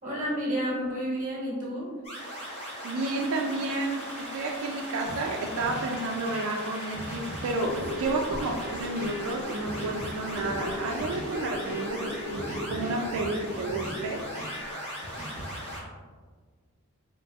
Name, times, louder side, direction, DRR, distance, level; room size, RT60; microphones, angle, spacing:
voice 1, 0.0-1.9, equal, 35° right, -5 dB, 1.2 m, -30 dB
sound 1, 2.0-15.8, equal, 30° left, 1.0 m, -39 dB
voice 2, 2.8-14.2, right 2 dB, 85° right, 0 dB, 0.4 m, -31 dB
sound 2, 5.1-15.8, equal, 5° right, 1.1 m, -41 dB
sound 3, 7.5-14.3 14.6-14.7, equal, 90° left, 0.9 m, -39 dB
4.0 x 2.9 x 2.3 m, 1.5 s
head